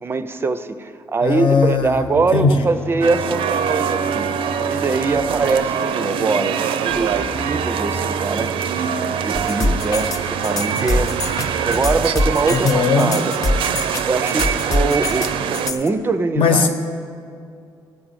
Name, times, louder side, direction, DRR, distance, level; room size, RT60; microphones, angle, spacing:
voice 1, 0.0-13.3 13.9-16.7, right 3 dB, 25° right, 11 dB, 0.4 m, -23 dB
voice 2, 1.2-2.0 2.3-2.7 12.5-13.2 16.4-16.7, left 4 dB, 75° left, 5 dB, 1.0 m, -17 dB
Telephone, 1.7-5.7 6.9-12.6, right 3 dB, 5° left, 0.7 m, -35 dB
sound 1, 3.0-15.7, right 7 dB, 90° right, 0.5 m, -24 dB
sound 2, 9.3-15.9, left 2 dB, 40° left, 0.8 m, -23 dB
14.5 x 4.9 x 8.8 m, 2.4 s
cardioid pair, 140°, 9 cm